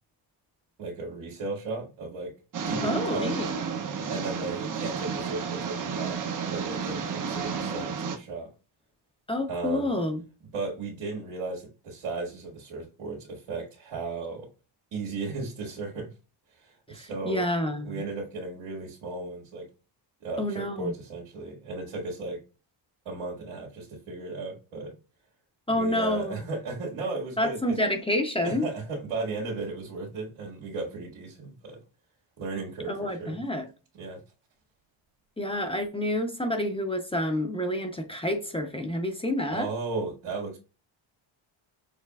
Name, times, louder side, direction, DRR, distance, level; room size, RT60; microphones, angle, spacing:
voice 1, 0.8-2.3 2.6-3.4 4.1-8.5 9.5-10.0 10.5-14.5 14.9-16.1 16.6-17.4 17.8-19.7 20.2-22.4 23.1-25.0 25.7-27.8 28.4-31.8 32.4-33.4 33.9-34.2 39.5-40.6, right 3 dB, 85° right, 2.0 m, -35 dB
sound 1, 2.5-8.2, right 6 dB, 40° right, 0.8 m, -32 dB
voice 2, 2.8-3.5 9.3-10.2 16.9-18.0 20.4-20.9 25.7-26.4 27.4-28.7 32.9-33.7 35.4-39.7, left 1 dB, 10° left, 0.7 m, -28 dB
6.7 x 3.0 x 2.3 m
cardioid pair, 115°, 48 cm